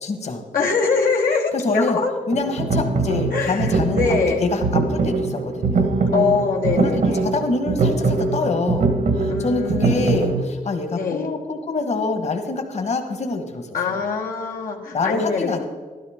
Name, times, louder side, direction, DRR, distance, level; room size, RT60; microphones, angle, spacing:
voice 1, 0.0-0.4 1.6-2.0 2.3-6.2 6.8-6.9 7.2-14.0 14.9-15.6, left 3 dB, 50° left, 5 dB, 1.5 m, -25 dB
voice 2, 0.5-2.1 3.3-4.4 6.1-7.2 9.3-10.2 10.9-11.3 13.7-15.6, left 5 dB, 80° left, 0 dB, 1.3 m, -23 dB
sound 1, 2.3-10.4, right 3 dB, 80° right, 1.4 m, -22 dB
13.0 x 12.5 x 3.7 m, 1.5 s
wide cardioid pair, 120°, 14 cm